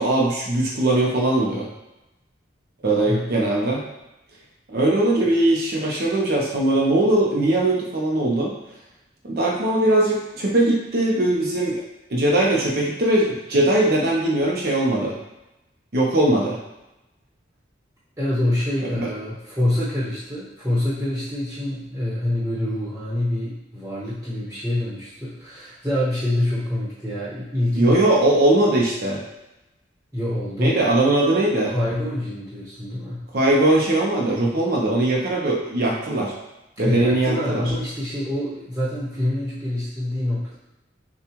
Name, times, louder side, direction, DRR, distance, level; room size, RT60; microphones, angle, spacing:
voice 1, 0.0-1.7 2.8-3.8 4.7-8.5 9.2-11.8 12.1-15.1 15.9-16.6 19.0-19.1 27.7-29.2 30.6-31.7 33.3-36.3 36.8-37.6, right 1 dB, 50° right, -2 dB, 0.7 m, -20 dB
voice 2, 3.1-3.4 18.2-27.9 30.1-30.8 31.7-33.2 36.8-40.6, left 1 dB, 10° right, -10 dB, 1.0 m, -26 dB
7.0 x 2.4 x 3.0 m, 0.96 s
head